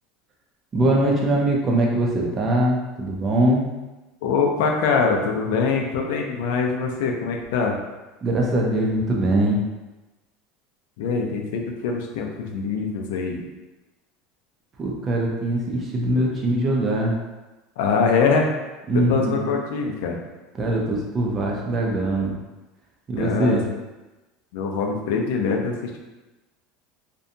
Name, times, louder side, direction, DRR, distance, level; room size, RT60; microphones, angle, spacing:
voice 1, 0.7-3.7 8.2-9.6 14.8-17.2 18.9-19.5 20.5-22.4 23.1-23.6, right 1 dB, 25° right, -1 dB, 0.5 m, -22 dB
voice 2, 4.2-7.8 11.0-13.4 17.8-18.5 18.9-20.2 23.2-23.6 24.5-26.0, left 5 dB, 75° left, 2 dB, 0.4 m, -23 dB
2.6 x 2.2 x 2.5 m, 1.1 s
cardioid pair, 165°, 0 cm